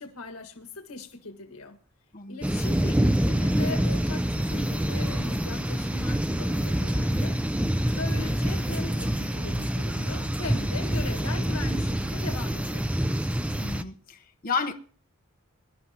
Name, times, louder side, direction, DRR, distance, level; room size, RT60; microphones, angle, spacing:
voice 1, 0.0-1.8 2.3-7.4 7.8-12.9, left 3 dB, 85° left, 1.7 m, -39 dB
sound 1, 2.4-13.8, right 1 dB, 5° right, 0.6 m, -26 dB
voice 2, 13.6-14.7, left 5 dB, 40° left, 1.0 m, -32 dB
22.5 x 11.5 x 2.9 m
head